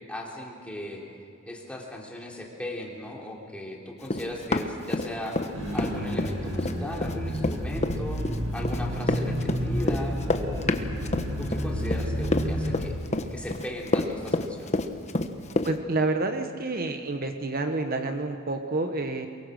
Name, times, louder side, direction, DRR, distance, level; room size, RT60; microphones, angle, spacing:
voice 1, 0.1-1.0 1.4-5.4 5.7-10.7 11.4-13.0 13.3-14.7, left 1 dB, 5° left, -2 dB, 3.4 m, -37 dB
Run, 4.1-5.5 5.8-15.7, left 2 dB, 35° left, 1.1 m, -28 dB
sound 1, 5.5-12.8, equal, 70° right, 6.4 m, -30 dB
voice 2, 15.6-19.3, right 2 dB, 45° right, 6 dB, 1.2 m, -28 dB
23.5 x 22.5 x 6.6 m, 2.5 s
head